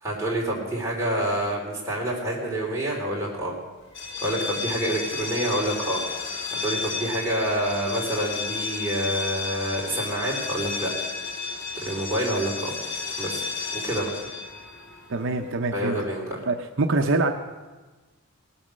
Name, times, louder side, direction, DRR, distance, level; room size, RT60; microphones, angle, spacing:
voice 1, 0.0-3.6 4.2-6.0 6.5-10.9 11.7-12.7 13.2-13.4 13.7-14.1 15.7-16.4, right 1 dB, 15° right, -4 dB, 3.4 m, -27 dB
sound 1, 3.9-15.6, left 4 dB, 55° left, 1.5 m, -32 dB
voice 2, 15.1-16.0 16.5-17.3, right 3 dB, 60° right, 5 dB, 0.7 m, -24 dB
19.0 x 7.1 x 6.5 m, 1.3 s
head